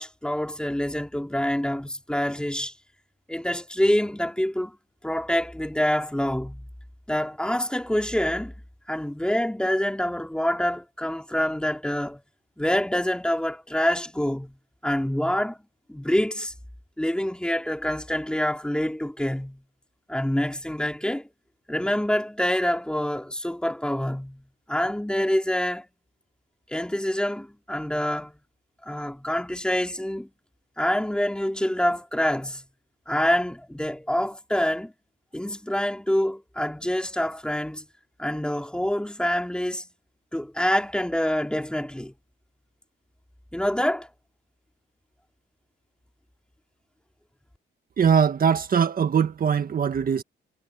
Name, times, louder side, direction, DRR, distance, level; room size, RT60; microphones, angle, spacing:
voice 1, 0.0-2.7 3.3-4.8 5.0-6.6 7.1-8.5 8.9-12.2 12.6-14.6 14.8-15.6 15.9-16.5 17.0-19.6 20.1-21.3 21.7-24.4 24.7-25.9 26.7-28.4 28.8-30.3 30.8-32.6 33.1-34.9 35.3-37.9 38.2-39.9 40.3-42.1 43.5-44.1, left 1 dB, 5° left, 3.0 m, -26 dB
voice 2, 48.0-50.2, right 7 dB, 45° right, 1.7 m, -21 dB
cardioid pair, 90°, 20 cm